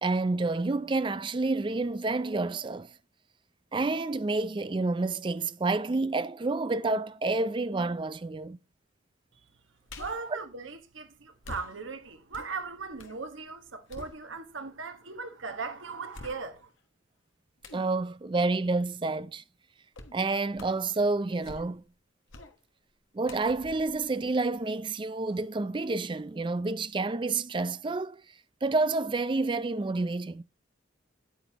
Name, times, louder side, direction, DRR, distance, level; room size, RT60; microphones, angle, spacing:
voice 1, 0.0-2.9 3.7-8.6 17.7-19.4 20.1-21.8 23.1-28.2 28.6-30.4, right 3 dB, 25° right, 0.4 m, -29 dB
sound 1, 9.9-10.3 11.4-13.2 13.6-14.7 15.2-15.3 16.1-16.8 17.6-17.9 19.9-20.2 20.5-20.9 21.3-21.9 22.3-22.6 23.2-24.9 25.3-25.4, left 2 dB, 85° left, 1.2 m, -47 dB
voice 2, 10.0-16.7, right 4 dB, 85° right, 1.5 m, -38 dB
9.1 x 9.1 x 2.9 m
head